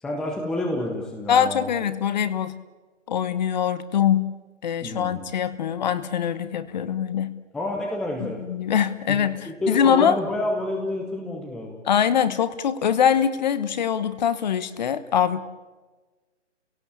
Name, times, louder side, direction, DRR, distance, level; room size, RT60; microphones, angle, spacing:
voice 1, 0.0-1.7 4.8-5.2 7.5-8.4 9.1-9.2 9.5-11.8, left 1 dB, ahead, 0 dB, 0.7 m, -29 dB
voice 2, 1.3-2.5 3.1-4.3 4.6-7.3 8.2-10.2 11.9-15.4, left 8 dB, 35° left, 13 dB, 1.2 m, -23 dB
29.5 x 17.0 x 8.4 m, 1.3 s
hypercardioid pair, 155°, 36 cm